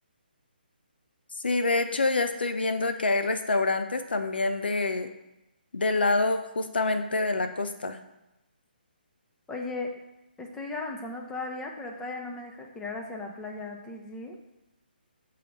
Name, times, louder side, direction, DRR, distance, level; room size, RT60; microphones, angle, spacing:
voice 1, 1.4-5.1 5.7-8.0, left 3 dB, 75° left, 8 dB, 0.5 m, -26 dB
voice 2, 9.5-9.9 10.4-14.4, left 3 dB, 10° left, 1 dB, 0.7 m, -36 dB
5.8 x 3.7 x 5.2 m, 0.96 s
figure-of-eight pair, 140°, 5 cm